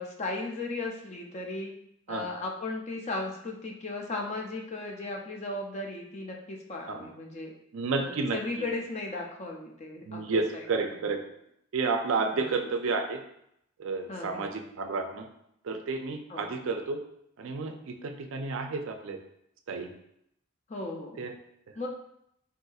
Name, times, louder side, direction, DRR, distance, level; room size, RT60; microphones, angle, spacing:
voice 1, 0.0-1.7 2.1-7.5 8.0-11.0 12.3-12.5 14.1-14.6 16.3-16.5 20.7-21.2 21.8-21.9, left 2 dB, 30° left, 1 dB, 0.4 m, -36 dB
voice 2, 7.7-8.4 10.1-11.2 11.7-13.2 13.8-15.3 15.6-17.0 17.4-19.2 19.7-19.9 21.2-21.3, right 4 dB, 65° right, 5 dB, 0.4 m, -31 dB
3.7 x 2.6 x 2.3 m, 0.75 s
head